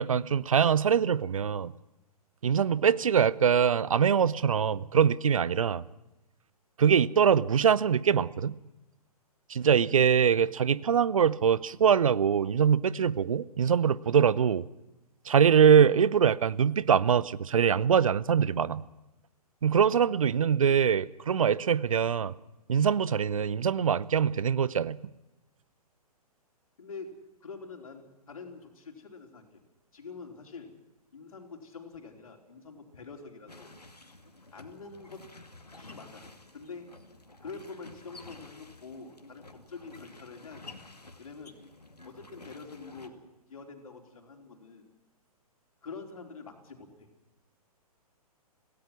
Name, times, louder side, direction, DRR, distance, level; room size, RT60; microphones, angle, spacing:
voice 1, 0.0-1.7 2.4-5.8 6.8-8.5 9.5-14.6 15.3-18.8 19.6-22.3 22.7-25.0, right 7 dB, 60° right, 20 dB, 0.8 m, -23 dB
voice 2, 26.8-29.6 29.9-30.7 31.1-33.7 34.5-35.2 35.8-36.3 36.5-36.9 37.4-40.6 41.2-41.6 42.0-43.1 43.5-44.9 45.8-47.1, left 4 dB, 60° left, 2 dB, 4.4 m, -45 dB
sound 1, 33.5-43.1, left 2 dB, 80° left, 2.4 m, -51 dB
26.5 x 17.5 x 6.1 m, 0.98 s
figure-of-eight pair, 120°, 20 cm